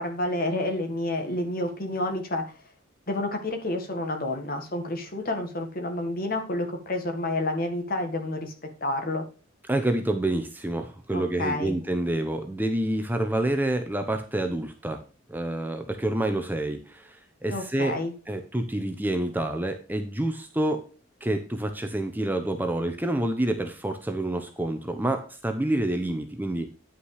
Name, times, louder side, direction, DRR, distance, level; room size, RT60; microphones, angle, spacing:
voice 1, 0.0-2.4 3.1-8.5 8.8-9.2 11.1-11.8 17.5-18.1, left 1 dB, 45° left, 5 dB, 1.8 m, -29 dB
voice 2, 9.7-15.0 15.3-18.0 18.3-20.8 21.2-26.7, right 1 dB, 10° right, 6 dB, 0.8 m, -28 dB
9.8 x 5.8 x 4.8 m, 0.37 s
head